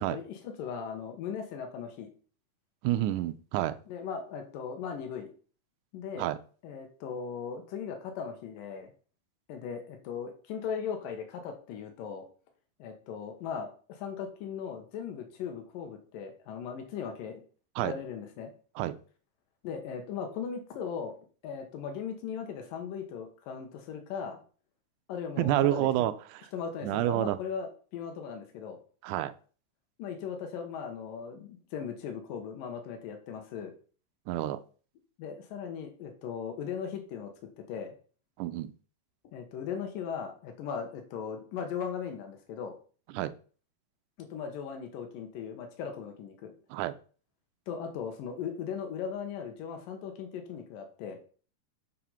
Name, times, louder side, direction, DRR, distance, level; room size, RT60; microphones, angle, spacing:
voice 1, 0.1-2.1 3.9-5.3 5.9-6.3 6.6-8.9 9.5-12.2 12.8-17.4 17.8-18.5 19.6-21.1 21.4-24.4 25.1-26.1 26.5-28.8 30.0-33.7 35.2-37.3 37.6-38.0 39.3-42.7 44.2-46.5 47.7-51.2, left 7 dB, 85° left, 2.9 m, -38 dB
voice 2, 2.8-3.8 6.2-6.4 17.8-17.9 18.8-19.0 25.4-26.1 26.8-27.4 29.0-29.3 34.3-34.6 38.4-38.7 43.1-43.3 46.7-46.9, right 14 dB, 75° right, 2.0 m, -28 dB
7.7 x 5.0 x 5.7 m
omnidirectional pair, 3.8 m